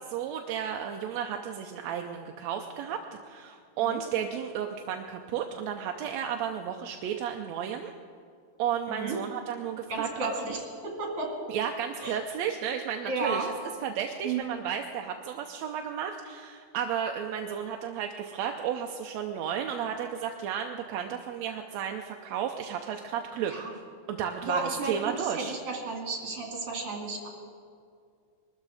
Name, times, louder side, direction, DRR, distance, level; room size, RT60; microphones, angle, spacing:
voice 1, 0.1-7.9 8.6-10.4 11.5-13.5 13.8-23.5 24.1-25.5, right 8 dB, 75° right, 4 dB, 1.9 m, -33 dB
voice 2, 9.9-10.6 10.8-11.3 12.0-12.2 13.0-13.5 14.2-14.5 23.5-23.7 24.4-27.3, right 3 dB, 55° right, 0 dB, 3.5 m, -33 dB
22.5 x 13.0 x 4.9 m, 2.2 s
omnidirectional pair, 3.5 m